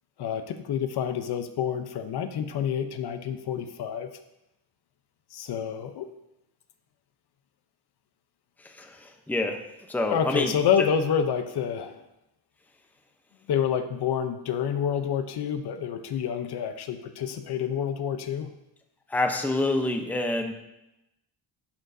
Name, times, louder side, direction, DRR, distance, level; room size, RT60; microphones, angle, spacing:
voice 1, 0.2-4.1 5.3-6.1 10.1-12.0 13.5-18.5, left 8 dB, 60° left, 9 dB, 0.7 m, -28 dB
voice 2, 9.3-9.6 9.9-10.5 19.1-20.5, left 2 dB, 5° left, 4 dB, 0.7 m, -26 dB
11.5 x 6.4 x 2.7 m, 0.88 s
cardioid pair, 120°, 45 cm